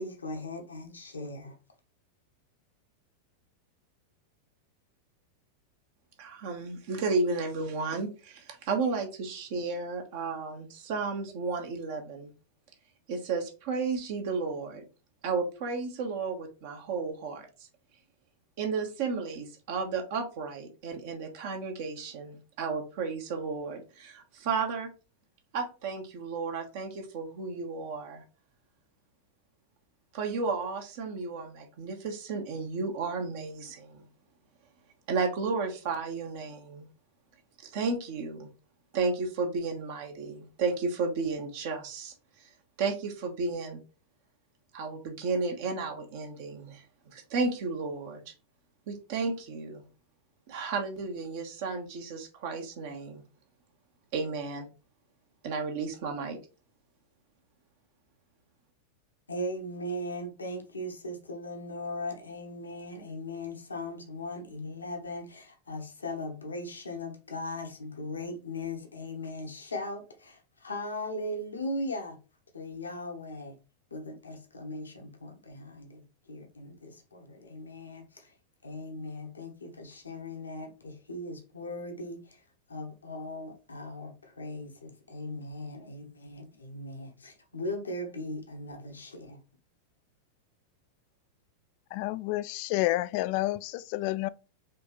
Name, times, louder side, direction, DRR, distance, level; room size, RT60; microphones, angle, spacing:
voice 1, 0.0-1.6 59.3-72.2 72.5-73.5 73.9-78.3 78.6-82.4 82.7-89.4, left 1 dB, 75° left, 1.2 m, -38 dB
voice 2, 6.2-12.3 13.1-14.8 15.2-17.5 18.6-24.9 25.5-28.2 30.1-34.1 35.1-36.8 37.6-38.5 38.9-42.5 42.8-43.8 44.7-48.3 48.9-49.8 50.5-53.2 54.1-54.7 55.4-56.4, right 4 dB, 50° right, 1.1 m, -33 dB
voice 3, 91.9-94.3, left 17 dB, 45° left, 0.3 m, -29 dB
5.0 x 3.4 x 3.0 m
figure-of-eight pair, 90°, 0 cm